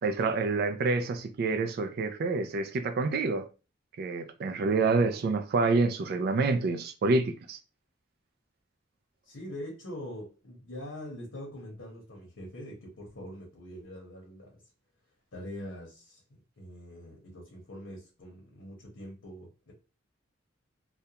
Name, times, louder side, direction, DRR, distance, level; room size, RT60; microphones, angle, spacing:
voice 1, 0.0-3.5 4.0-7.6, right 3 dB, 55° right, 0.3 m, -27 dB
voice 2, 9.2-14.6 15.3-19.7, left 1 dB, 90° left, 0.8 m, -43 dB
2.4 x 2.1 x 2.8 m
head